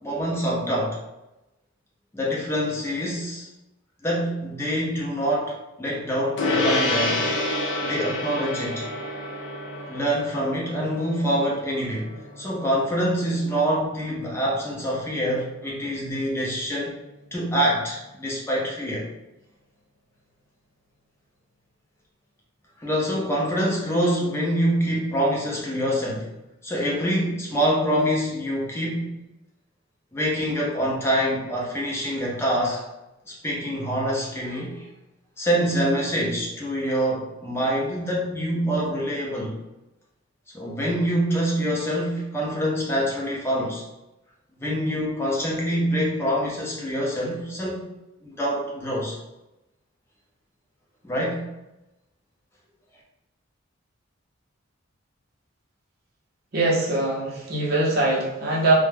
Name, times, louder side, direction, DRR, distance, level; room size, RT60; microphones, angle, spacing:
voice 1, 0.0-1.0 2.1-3.5 4.0-7.2 7.8-8.9 9.9-16.9 17.3-19.1 22.8-26.3 26.6-29.1 30.1-32.8 33.3-34.9 35.4-39.6 40.5-43.8 44.6-47.9 48.2-49.2 51.0-51.5, equal, 10° left, -4 dB, 0.5 m, -25 dB
Gong, 6.4-16.1, left 2 dB, 65° left, 0.5 m, -30 dB
voice 2, 56.5-58.7, right 2 dB, 50° right, -4 dB, 0.6 m, -22 dB
2.2 x 2.1 x 3.2 m, 0.96 s
head